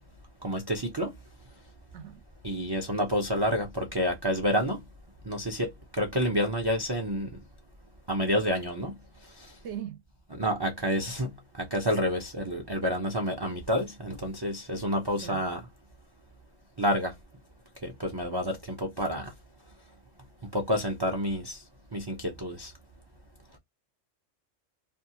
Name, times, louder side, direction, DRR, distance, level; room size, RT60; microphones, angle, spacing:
voice 1, 0.4-1.1 2.4-4.8 5.3-7.3 8.1-8.9 9.4-9.5 10.3-15.6 16.8-17.1 17.8-19.3 20.5-21.6 21.9-22.7, equal, 35° right, 0.4 m, -29 dB
voice 2, 9.6-10.0 15.2-15.4, right 9 dB, 70° right, 0.9 m, -39 dB
2.5 x 2.3 x 2.7 m
omnidirectional pair, 1.3 m